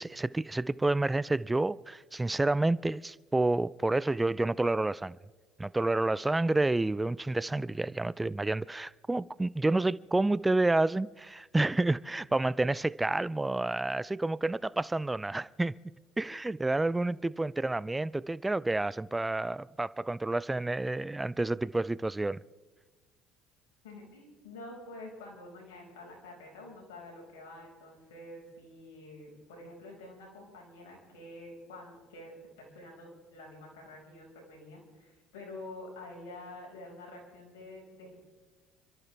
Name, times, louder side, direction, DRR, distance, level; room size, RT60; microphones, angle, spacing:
voice 1, 0.0-5.2 5.6-15.7 16.2-22.4, right 2 dB, 15° right, 0.4 m, -29 dB
voice 2, 23.8-38.2, left 2 dB, 85° left, 5.3 m, -48 dB
30.0 x 13.0 x 3.4 m
hypercardioid pair, 75°, 0 cm